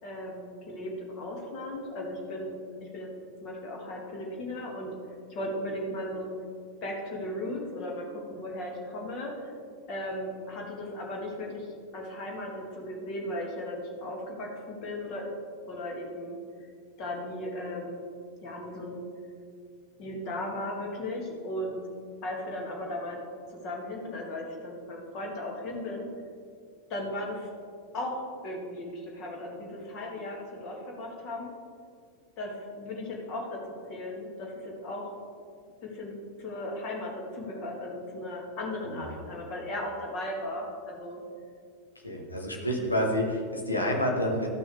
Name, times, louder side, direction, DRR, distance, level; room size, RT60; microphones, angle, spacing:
voice 1, 0.0-3.1 3.4-4.9 5.3-6.3 6.8-9.5 9.9-11.7 11.9-15.3 15.7-16.4 17.0-18.0 18.4-19.0 20.0-21.8 22.2-23.2 23.5-26.1 26.9-27.5 27.9-31.5 32.4-33.6 33.9-35.1 35.8-36.1 36.4-41.2 42.8-42.9, left 1 dB, 40° left, -1 dB, 2.2 m, -36 dB
voice 2, 42.0-44.5, equal, 80° left, 0 dB, 1.5 m, -28 dB
14.0 x 6.1 x 3.4 m, 2.2 s
figure-of-eight pair, 90°, 0 cm